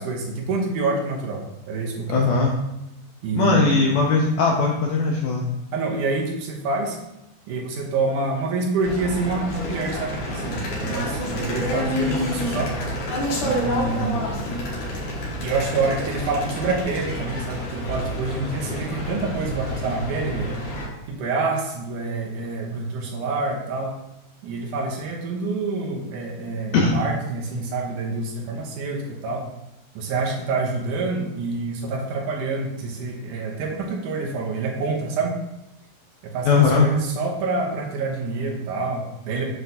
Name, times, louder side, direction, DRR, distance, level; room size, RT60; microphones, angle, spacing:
voice 1, 0.0-1.4 1.7-2.4 3.2-3.9 5.7-7.0 7.5-12.7 13.4-14.3 15.4-20.5 21.1-24.0 24.4-29.4 30.0-35.4 36.2-39.5, right 3 dB, 75° right, -1 dB, 1.9 m, -27 dB
voice 2, 2.1-2.5 3.3-5.4 26.7-26.9 36.4-36.9, left 4 dB, 90° left, -1 dB, 1.8 m, -19 dB
sound 1, 8.8-20.9, left 1 dB, 55° left, 2.4 m, -29 dB
7.7 x 6.3 x 2.7 m, 0.92 s
omnidirectional pair, 4.7 m